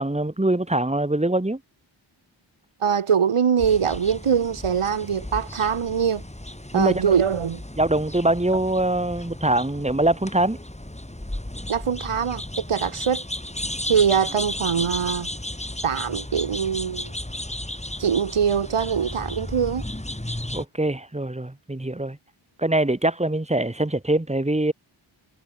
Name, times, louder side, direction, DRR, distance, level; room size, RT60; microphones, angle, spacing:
voice 1, 0.0-1.6 6.7-7.0 7.8-10.6 20.5-22.2 22.6-24.7, right 1 dB, 15° right, 2.4 m, -23 dB
voice 2, 2.8-6.2 6.7-7.6 11.7-13.2 13.9-15.3 15.8-17.1 18.0-19.8, right 7 dB, 85° right, 1.4 m, -23 dB
sound 1, 3.6-20.7, left 1 dB, 15° left, 4.8 m, -34 dB
wide cardioid pair, 75°, 49 cm